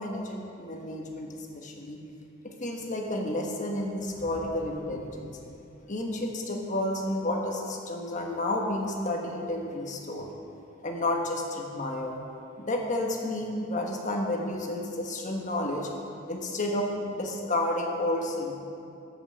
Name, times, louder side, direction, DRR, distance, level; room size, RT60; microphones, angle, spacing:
voice 1, 0.0-2.0 2.4-5.4 5.9-10.3 10.8-12.2 12.6-15.9 16.3-18.5, left 1 dB, 40° left, 1 dB, 1.3 m, -31 dB
Thunder, 3.8-6.1, right 1 dB, 85° right, 2.7 m, -49 dB
9.7 x 8.2 x 7.1 m, 2.6 s
head